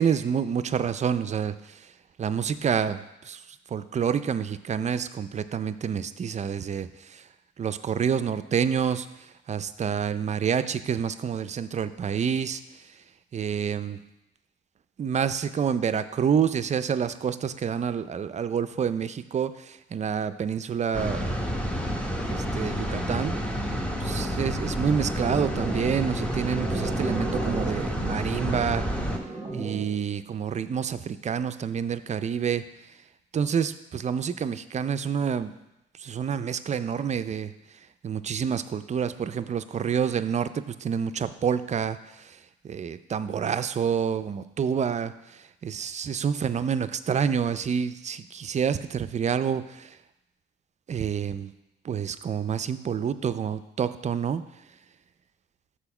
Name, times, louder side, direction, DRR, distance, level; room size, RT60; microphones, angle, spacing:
voice 1, 0.0-1.5 2.2-3.4 3.7-6.9 7.6-9.1 9.5-12.6 13.3-14.0 15.0-21.3 22.3-23.4 24.0-28.8 29.5-32.6 33.3-35.5 36.0-37.5 38.0-42.0 42.6-45.1 45.6-49.9 50.9-51.5 51.8-54.4, right 7 dB, 35° right, 12 dB, 0.4 m, -28 dB
sound 1, 20.9-29.2, equal, 5° left, 0.8 m, -29 dB
sound 2, 25.0-30.0, right 2 dB, 15° right, 1.4 m, -35 dB
6.9 x 4.4 x 5.9 m, 0.91 s
cardioid pair, 90°, 20 cm